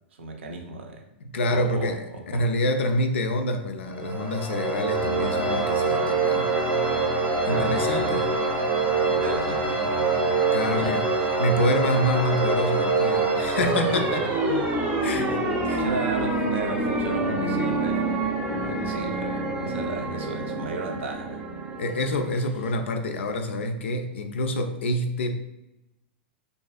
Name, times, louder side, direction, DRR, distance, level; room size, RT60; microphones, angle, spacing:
voice 1, 0.2-1.0 1.5-2.4 7.5-8.1 9.1-10.4 10.6-11.0 15.3-18.2 18.6-21.5 22.0-22.1, right 3 dB, 80° right, 4 dB, 0.5 m, -35 dB
voice 2, 1.3-6.6 7.5-8.3 10.5-11.1 11.4-14.3 15.0-15.8 21.8-25.3, left 1 dB, 80° left, 6 dB, 0.3 m, -27 dB
sound 1, 3.9-22.5, right 3 dB, 30° right, 0.6 m, -25 dB
sound 2, 5.0-18.1, right 1 dB, 15° left, 0.5 m, -44 dB
2.4 x 2.3 x 2.4 m, 0.92 s
hypercardioid pair, 115°, 6 cm